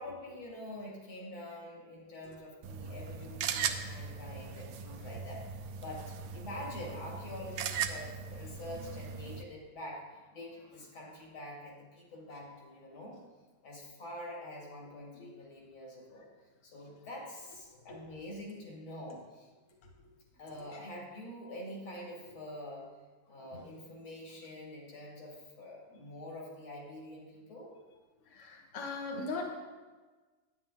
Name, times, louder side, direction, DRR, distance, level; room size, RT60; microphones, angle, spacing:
voice 1, 0.0-13.2 13.6-16.3 16.6-19.5 20.4-22.9 23.3-27.7, left 1 dB, 85° left, -2 dB, 3.1 m, -46 dB
sound 1, 2.6-9.4, right 7 dB, 80° right, 1.4 m, -39 dB
voice 2, 28.3-29.5, left 3 dB, 40° left, -1 dB, 1.6 m, -38 dB
10.5 x 9.4 x 3.8 m, 1.3 s
omnidirectional pair, 2.2 m